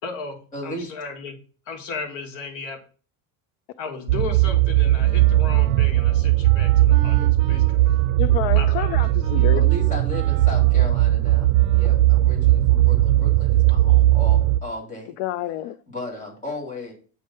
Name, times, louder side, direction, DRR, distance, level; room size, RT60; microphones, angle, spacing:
voice 1, 0.0-1.4 1.7-2.8 3.8-7.9 8.5-8.9, left 4 dB, 90° left, 2.1 m, -35 dB
voice 2, 0.5-0.9 9.3-15.1 15.9-16.9, left 1 dB, 20° left, 2.3 m, -35 dB
sound 1, 4.1-14.6, right 15 dB, 80° right, 0.5 m, -18 dB
Wind instrument woodwind instrument, 5.0-12.1, right 9 dB, 60° right, 0.8 m, -41 dB
voice 3, 8.2-9.6 15.2-15.8, left 13 dB, 65° left, 0.5 m, -28 dB
8.5 x 3.5 x 5.3 m
cardioid pair, 175°, 37 cm